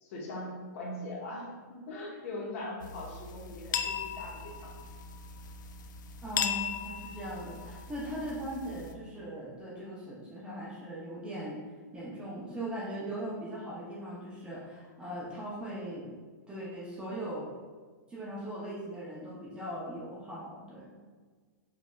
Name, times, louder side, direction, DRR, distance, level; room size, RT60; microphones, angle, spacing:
voice 1, 0.0-4.7, left 1 dB, 50° left, -3 dB, 1.1 m, -41 dB
sound 1, 2.8-8.9, left 7 dB, 80° left, 0.4 m, -38 dB
voice 2, 6.2-11.6 11.9-16.1 16.5-17.5 18.1-21.0, right 1 dB, 10° right, -6 dB, 0.6 m, -39 dB
5.3 x 2.7 x 2.3 m, 1.5 s
hypercardioid pair, 150°, 10 cm